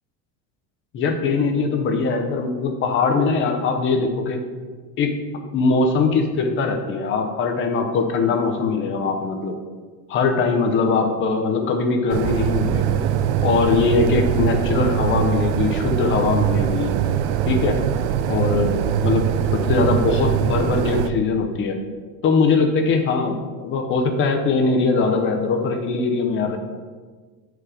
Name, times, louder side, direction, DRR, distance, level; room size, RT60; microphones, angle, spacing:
voice 1, 0.9-4.4 5.0-5.2 5.5-9.5 10.1-13.0 13.4-17.0 17.4-17.8 18.3-19.3 19.7-21.8 22.2-26.6, left 4 dB, 30° left, 5 dB, 0.7 m, -21 dB
sound 1, 12.1-21.1, right 10 dB, 80° right, 0.6 m, -22 dB
9.0 x 4.8 x 5.0 m, 1.5 s
cardioid pair, 175°, 39 cm